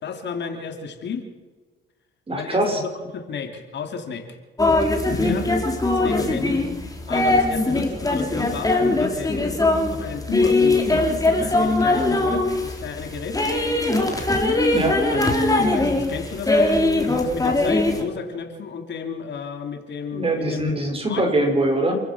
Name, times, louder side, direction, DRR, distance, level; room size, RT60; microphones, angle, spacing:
voice 1, 0.0-1.2 2.3-4.4 4.8-5.5 5.9-6.6 7.1-9.5 9.9-13.4 15.1-16.7 17.2-20.7 21.1-21.3, left 6 dB, 65° left, 5 dB, 3.2 m, -32 dB
voice 2, 2.3-2.8 5.1-5.3 14.7-15.0 20.1-22.0, right 1 dB, 30° right, 3 dB, 6.5 m, -22 dB
sound 1, 4.6-18.0, left 2 dB, 15° left, 3.8 m, -21 dB
28.5 x 15.0 x 6.3 m, 1.3 s
cardioid pair, 90°, 20 cm